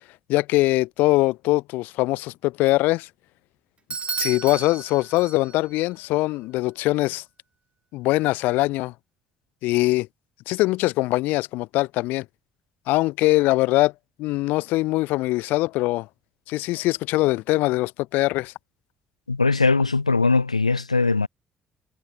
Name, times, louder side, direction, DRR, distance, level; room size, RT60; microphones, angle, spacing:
voice 1, 0.3-3.1 4.2-7.2 7.9-8.9 9.6-10.1 10.5-12.2 12.9-13.9 14.2-16.1 16.5-18.5, left 19 dB, 60° left, 1.0 m, -22 dB
Bell / Doorbell, 3.9-5.8, right 5 dB, 35° right, 1.6 m, -32 dB
voice 2, 19.3-21.3, left 3 dB, 85° left, 0.7 m, -20 dB
figure-of-eight pair, 45°, 3 cm